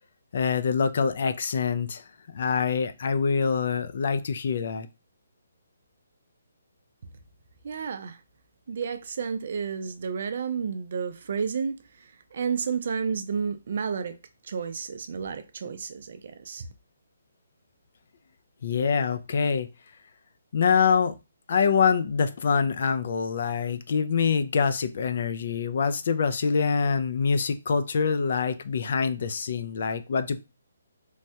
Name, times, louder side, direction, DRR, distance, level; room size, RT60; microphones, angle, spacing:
voice 1, 0.3-2.0 2.3-4.9 18.6-19.7 20.5-21.1 21.5-30.4, left 6 dB, 55° left, 0.4 m, -25 dB
voice 2, 7.6-8.2 8.7-11.8 12.3-14.2 14.4-16.7, right 6 dB, 55° right, 0.4 m, -31 dB
3.2 x 2.2 x 2.7 m
hypercardioid pair, 160°, 0 cm